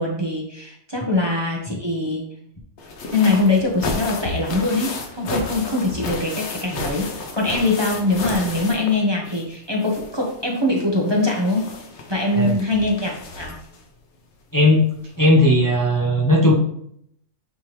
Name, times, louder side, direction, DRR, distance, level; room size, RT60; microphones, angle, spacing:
voice 1, 0.0-2.2 3.1-7.1 7.3-11.6 12.1-13.5, left 2 dB, 20° right, -2 dB, 1.1 m, -22 dB
sound 1, 2.8-9.5 9.8-13.8 14.8-14.9 15.3-15.4, left 3 dB, 65° left, 1.2 m, -32 dB
voice 2, 14.5-14.8 15.2-16.5, left 1 dB, 15° left, -4 dB, 0.9 m, -16 dB
8.9 x 3.5 x 3.2 m, 0.71 s
omnidirectional pair, 1.3 m